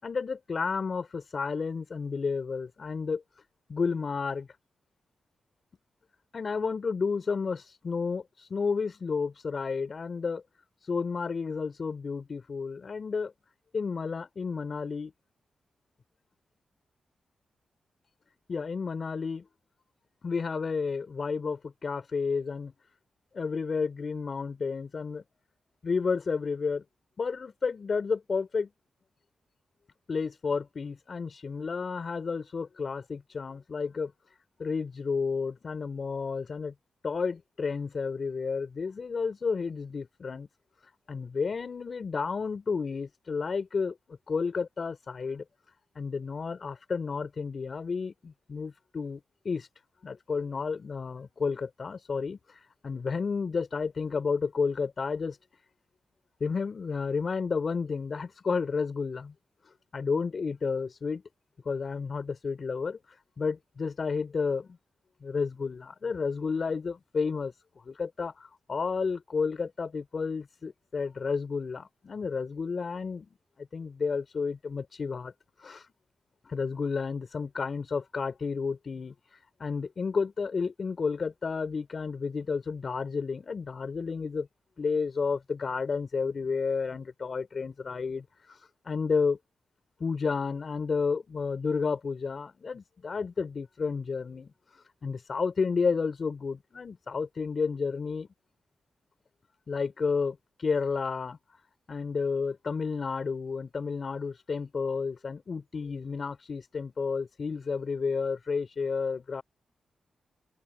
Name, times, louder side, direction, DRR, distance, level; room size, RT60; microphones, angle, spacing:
voice 1, 0.0-3.2 3.7-4.5 6.3-8.2 8.5-10.4 10.9-13.3 13.7-15.1 18.5-19.5 20.2-22.7 23.3-25.2 25.8-26.8 27.2-28.7 30.1-34.1 34.6-36.7 37.0-40.5 41.1-45.4 45.9-49.7 50.0-52.4 52.8-55.4 56.4-59.3 59.9-61.2 61.6-63.0 63.4-64.8 65.2-67.5 67.8-73.3 73.6-75.3 75.6-75.8 76.4-79.1 79.6-84.5 84.8-88.6 88.8-89.4 90.0-98.3 99.7-101.4 101.9-109.4, left 5 dB, 50° left, 6.1 m, -31 dB
open air
cardioid pair, 70°, 0 cm